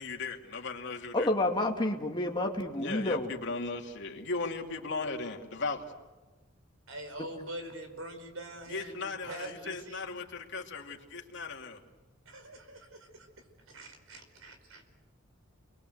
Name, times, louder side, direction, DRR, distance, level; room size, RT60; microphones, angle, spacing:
voice 1, 0.0-1.3 2.8-5.8 8.7-11.8, left 3 dB, 60° left, 1 dB, 2.8 m, -37 dB
voice 2, 1.1-3.3, left 1 dB, 25° left, 2 dB, 2.4 m, -29 dB
voice 3, 6.9-10.1 12.2-13.3 13.7-14.8, right 1 dB, 80° right, 6 dB, 5.0 m, -44 dB
30.0 x 22.5 x 8.0 m, 1.2 s
head